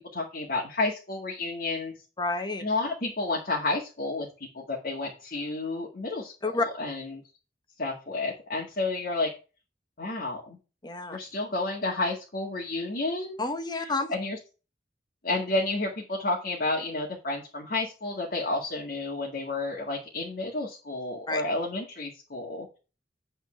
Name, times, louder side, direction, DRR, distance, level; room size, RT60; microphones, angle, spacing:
voice 1, 0.0-2.0 2.6-4.3 4.5-7.2 7.8-9.3 10.0-10.6 11.1-13.4 13.8-14.4 15.2-22.8, left 2 dB, 55° left, -1 dB, 2.1 m, -31 dB
voice 2, 2.2-2.6 6.4-6.7 10.8-11.2 13.4-14.1 21.3-21.4, left 3 dB, 25° left, 7 dB, 1.1 m, -29 dB
8.9 x 4.4 x 5.7 m, 0.32 s
head